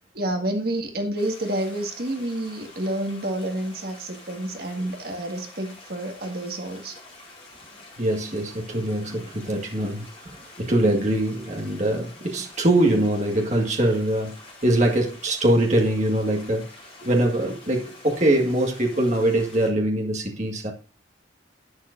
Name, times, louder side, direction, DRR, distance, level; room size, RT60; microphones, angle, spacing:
voice 1, 0.1-7.0, right 1 dB, 55° right, 1.7 m, -29 dB
sound 1, 1.2-19.7, left 2 dB, 30° left, 4.7 m, -47 dB
voice 2, 8.0-14.4 14.6-16.7 17.0-20.7, right 1 dB, 40° right, 1.8 m, -23 dB
11.5 x 9.4 x 2.6 m
head